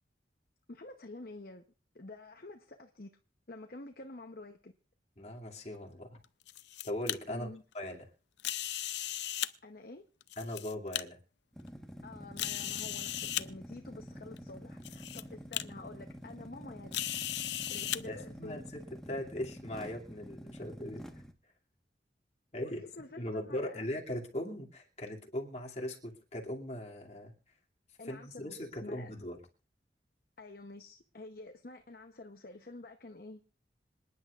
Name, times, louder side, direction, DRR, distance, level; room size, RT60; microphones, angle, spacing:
voice 1, 0.7-1.6 1.9-3.2 3.5-4.7 7.3-7.6 9.6-10.0 12.0-17.0 17.7-18.6 22.6-23.9 28.0-29.1 30.4-33.4, left 2 dB, 55° left, 0.9 m, -48 dB
voice 2, 5.2-6.2 6.8-7.5 7.7-8.1 10.4-11.2 18.1-21.0 22.5-22.8 23.2-27.3 28.0-29.4, left 1 dB, 40° left, 2.5 m, -39 dB
sound 1, 6.2-7.2 8.4-9.5 10.2-11.0 11.7-11.8 12.4-13.4 14.4-14.5 14.8-15.2 15.5-15.6 16.9-18.0, left 13 dB, 85° left, 0.6 m, -36 dB
sound 2, 11.5-21.3, equal, 5° left, 1.3 m, -48 dB
26.5 x 10.5 x 2.5 m
head